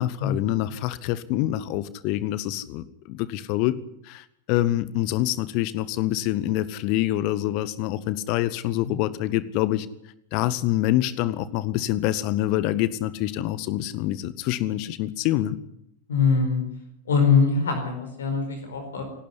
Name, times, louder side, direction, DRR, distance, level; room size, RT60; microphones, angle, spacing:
voice 1, 0.0-9.9 10.3-15.6, left 14 dB, 45° left, 17 dB, 1.1 m, -26 dB
voice 2, 16.1-16.6 17.1-19.0, left 5 dB, 65° left, 6 dB, 4.5 m, -22 dB
28.0 x 12.0 x 10.0 m, 0.75 s
figure-of-eight pair, 90°, 0 cm